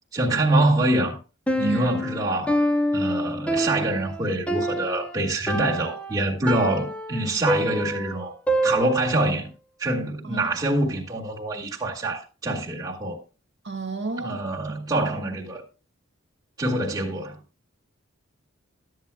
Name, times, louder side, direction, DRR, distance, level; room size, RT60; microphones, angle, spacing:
voice 1, 0.1-1.2 1.6-2.6 2.9-8.4 8.6-9.5 9.8-13.2 14.2-15.6 16.6-17.4, right 2 dB, 20° right, 2.0 m, -25 dB
Piano, 1.5-9.3, equal, 5° left, 0.8 m, -27 dB
voice 2, 1.6-1.9 10.2-10.5 13.6-14.8, right 3 dB, 60° right, 1.5 m, -31 dB
13.0 x 8.1 x 2.3 m
head